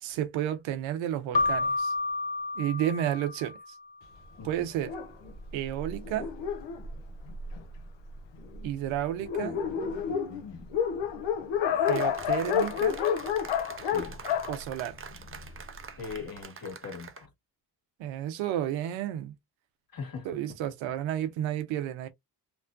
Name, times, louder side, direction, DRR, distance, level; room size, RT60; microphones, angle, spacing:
voice 1, 0.0-1.9 2.6-3.8 4.4-4.9 5.5-6.3 8.6-9.6 11.9-13.0 14.5-15.0 18.0-19.3 20.2-22.1, right 11 dB, 90° right, 0.6 m, -31 dB
Keyboard (musical), 1.3-3.9, left 3 dB, 20° left, 0.3 m, -30 dB
voice 2, 4.4-4.7 9.4-9.7 10.3-10.7 13.9-14.2 16.0-17.3 19.9-20.3, left 5 dB, 50° left, 1.6 m, -41 dB
Dog, 4.8-7.8 8.5-8.6 8.9-9.0 9.2-15.6, left 8 dB, 70° left, 0.8 m, -30 dB
sound 1, 11.9-17.2, right 6 dB, 30° right, 0.6 m, -45 dB
3.0 x 2.1 x 2.4 m
supercardioid pair, 50°, 45 cm